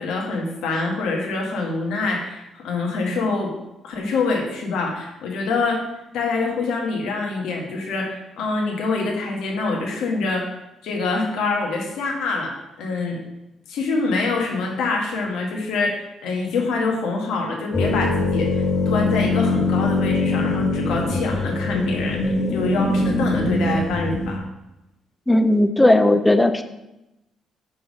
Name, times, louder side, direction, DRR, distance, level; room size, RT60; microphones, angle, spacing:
voice 1, 0.0-3.5 3.8-5.8 6.1-13.2 13.7-24.4, left 3 dB, 85° left, 0 dB, 1.6 m, -25 dB
sound 1, 17.7-24.4, left 2 dB, 55° left, 2.0 m, -22 dB
voice 2, 25.3-26.6, left 1 dB, 10° left, 9 dB, 0.6 m, -16 dB
5.6 x 5.4 x 5.3 m, 0.94 s
cardioid pair, 90°, 0 cm